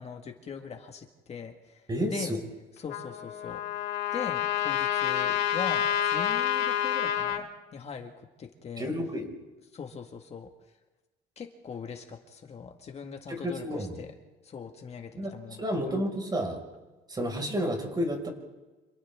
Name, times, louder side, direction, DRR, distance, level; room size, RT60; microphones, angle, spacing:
voice 1, 0.0-2.3 2.8-3.9 4.1-8.9 9.7-10.5 11.4-14.1 14.4-15.9, left 6 dB, 40° left, 4 dB, 1.9 m, -41 dB
voice 2, 1.9-2.3 8.8-9.3 13.3-14.0 15.2-15.3 15.6-16.6 17.1-18.3, equal, 25° right, 2 dB, 5.7 m, -30 dB
Trumpet, 2.9-7.4, left 10 dB, 85° left, 2.5 m, -28 dB
29.5 x 27.5 x 3.7 m, 1.2 s
cardioid pair, 110°, 17 cm